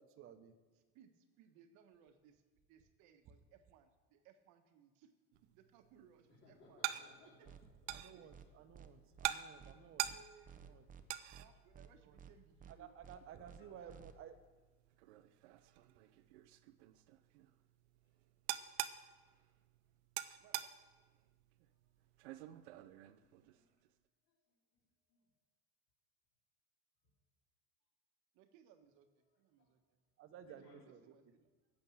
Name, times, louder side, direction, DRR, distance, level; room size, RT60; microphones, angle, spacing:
voice 1, 0.0-0.6 7.9-10.1 10.6-10.8 12.0-12.2 12.7-14.3 30.2-31.0, right 8 dB, 40° right, 9 dB, 1.1 m, -55 dB
voice 2, 0.7-2.4 2.7-5.1 5.4-6.8 7.4-7.5 8.1-8.3 10.1-10.5 11.3-13.0 13.8-14.0 20.4-20.7 28.3-30.0 30.5-31.5, right 8 dB, 60° right, 7 dB, 1.3 m, -66 dB
sound 1, 5.3-23.9, right 14 dB, 80° right, 0.7 m, -47 dB
voice 3, 6.4-7.5 8.0-8.1 8.4-8.5 11.0-11.1 13.6-13.7 21.7-21.8 23.1-23.9 24.3-24.4 25.1-25.2 29.6-29.7 30.4-30.8, left 3 dB, 40° left, -6 dB, 3.2 m, -65 dB
sound 2, 7.4-7.6 7.9-8.0 8.3-8.5 8.7-8.9 9.2-9.3 9.6-9.7 10.0-10.2 10.4-11.0 11.3-11.5 11.7-11.9 12.2-12.3 12.6-12.7 13.0-13.2 13.4-13.6 13.9-14.1, right 7 dB, 25° right, 0.7 m, -55 dB
10.5 x 7.8 x 7.2 m, 1.3 s
supercardioid pair, 120°, 33 cm